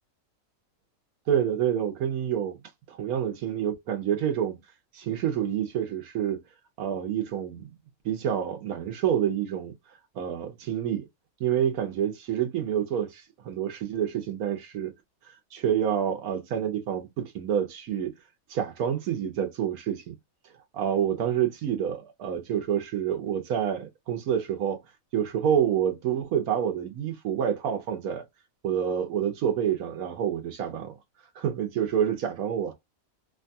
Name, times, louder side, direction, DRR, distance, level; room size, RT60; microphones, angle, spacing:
voice 1, 1.3-2.6 2.9-4.6 4.9-6.4 6.8-7.7 8.0-9.7 10.1-11.1 11.4-14.9 15.5-18.1 18.5-20.2 20.7-24.8 25.1-28.2 28.6-30.9 31.4-32.7, right 9 dB, 85° right, 1.2 m, -28 dB
3.0 x 2.3 x 2.6 m
omnidirectional pair, 1.5 m